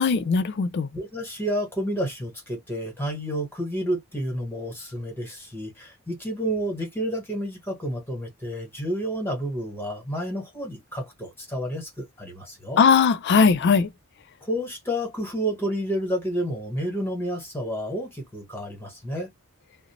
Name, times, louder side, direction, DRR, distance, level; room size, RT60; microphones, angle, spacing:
voice 1, 0.0-0.9 12.8-13.9, left 5 dB, 50° left, 0.3 m, -19 dB
voice 2, 0.9-12.8 14.4-19.3, equal, 10° left, 1.1 m, -30 dB
2.5 x 2.0 x 2.9 m
head